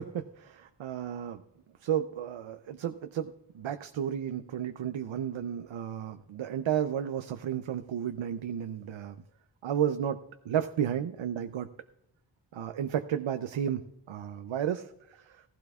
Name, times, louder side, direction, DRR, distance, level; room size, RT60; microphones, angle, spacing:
voice 1, 0.0-1.4 1.8-9.2 9.6-11.7 12.5-15.4, right 9 dB, 80° right, 10 dB, 0.6 m, -33 dB
16.0 x 15.5 x 2.3 m, 0.85 s
wide cardioid pair, 105°, 46 cm